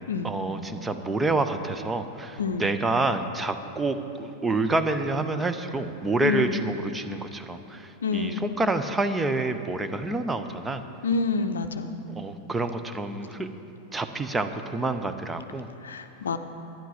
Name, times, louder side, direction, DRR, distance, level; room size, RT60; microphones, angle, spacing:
voice 1, 0.2-10.8 12.1-13.5 13.9-15.7, right 2 dB, 10° right, 9 dB, 0.7 m, -28 dB
voice 2, 2.4-2.7 6.2-6.6 8.0-8.4 11.0-12.0 15.8-16.4, left 4 dB, 70° left, 8 dB, 0.6 m, -27 dB
11.5 x 10.5 x 5.8 m, 2.8 s
figure-of-eight pair, 90°, 0 cm